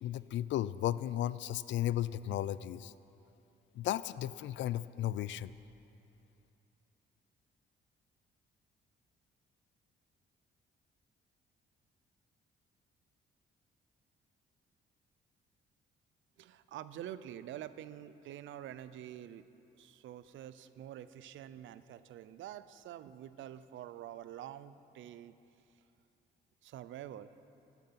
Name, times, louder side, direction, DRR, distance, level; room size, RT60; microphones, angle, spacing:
voice 1, 0.0-2.9 3.8-5.5, left 12 dB, 70° left, 17 dB, 0.4 m, -34 dB
voice 2, 16.4-19.5 19.7-25.4 26.6-27.3, right 11 dB, 75° right, 14 dB, 0.5 m, -47 dB
14.5 x 9.1 x 5.8 m, 2.8 s
cardioid pair, 90°, 20 cm